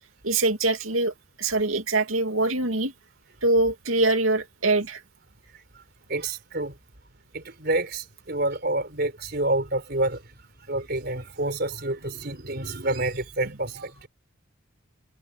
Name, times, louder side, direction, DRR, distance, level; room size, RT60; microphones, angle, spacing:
voice 1, 0.2-2.9 3.4-5.0, right 2 dB, 80° right, 2.6 m, -23 dB
voice 2, 6.1-6.8 7.3-10.2 10.7-14.1, right 2 dB, 50° right, 4.3 m, -28 dB
head